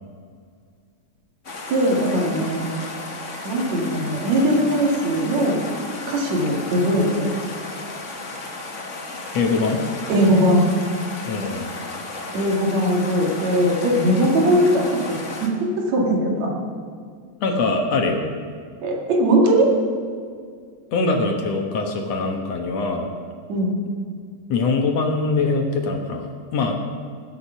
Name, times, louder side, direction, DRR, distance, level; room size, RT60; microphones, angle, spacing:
sound 1, 1.4-15.5, left 3 dB, 40° left, 1.1 m, -34 dB
voice 1, 1.7-2.7 3.4-5.6 6.1-7.3 10.1-10.7 12.3-16.5 18.8-19.7 23.5-23.7, equal, 65° right, 0 dB, 3.3 m, -20 dB
voice 2, 9.3-9.8 11.3-11.7 17.4-18.3 20.9-23.1 24.5-26.3 26.5-26.8, left 3 dB, 65° left, 3 dB, 2.3 m, -22 dB
19.5 x 8.4 x 5.6 m, 2.1 s
omnidirectional pair, 3.4 m